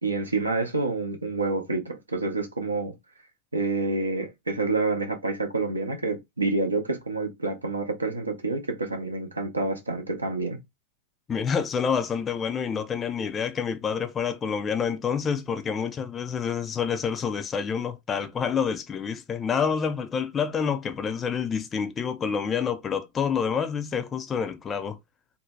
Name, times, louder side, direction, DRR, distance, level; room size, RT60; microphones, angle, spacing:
voice 1, 0.0-2.9 3.5-10.6, right 3 dB, 80° right, 0.6 m, -28 dB
voice 2, 11.3-25.0, left 6 dB, 20° left, 0.4 m, -28 dB
2.6 x 2.1 x 3.1 m
figure-of-eight pair, 90°, 0 cm